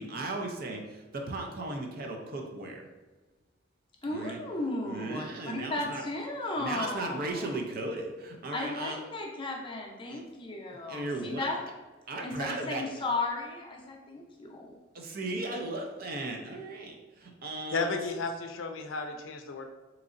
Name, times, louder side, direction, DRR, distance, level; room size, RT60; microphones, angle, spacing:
voice 1, 0.0-2.9 4.1-4.4 4.8-6.0 6.6-9.0 10.1-10.3 10.7-11.6 12.1-12.8 14.9-18.0, right 2 dB, 50° right, 2 dB, 0.5 m, -36 dB
voice 2, 4.0-7.6 8.5-11.6 12.2-14.7, left 2 dB, 25° left, -1 dB, 0.6 m, -35 dB
voice 3, 17.7-19.6, left 3 dB, 90° left, 5 dB, 0.4 m, -33 dB
3.7 x 3.0 x 2.5 m, 1.2 s
head